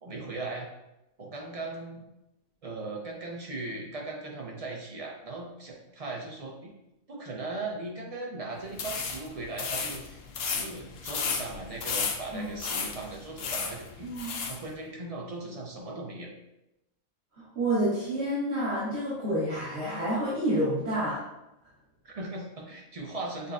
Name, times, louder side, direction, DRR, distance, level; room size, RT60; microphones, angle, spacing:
voice 1, 0.0-0.7 1.2-2.0 2.6-6.7 7.1-10.2 10.4-16.3 22.0-23.5, right 2 dB, 40° right, -1 dB, 0.6 m, -38 dB
sound 1, 8.7-14.6, left 5 dB, 65° left, 0.7 m, -34 dB
voice 2, 14.0-14.4 17.4-21.2, right 1 dB, 60° right, -11 dB, 1.4 m, -29 dB
6.5 x 2.2 x 2.5 m, 0.90 s
omnidirectional pair, 1.3 m